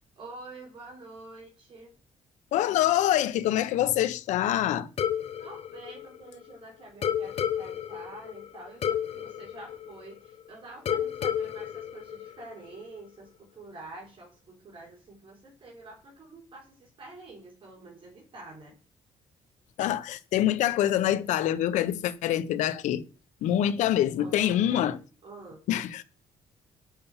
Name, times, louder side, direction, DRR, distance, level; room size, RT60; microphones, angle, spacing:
voice 1, 0.2-1.9 5.4-18.8 24.2-25.6, right 2 dB, 45° right, 3.6 m, -47 dB
voice 2, 2.5-4.9 19.8-23.0 23.4-25.0 25.7-26.0, left 12 dB, 85° left, 0.9 m, -25 dB
sound 1, 5.0-6.6 7.0-10.4 10.9-12.8, left 9 dB, 55° left, 1.1 m, -32 dB
7.7 x 5.6 x 7.1 m
cardioid pair, 115°, 12 cm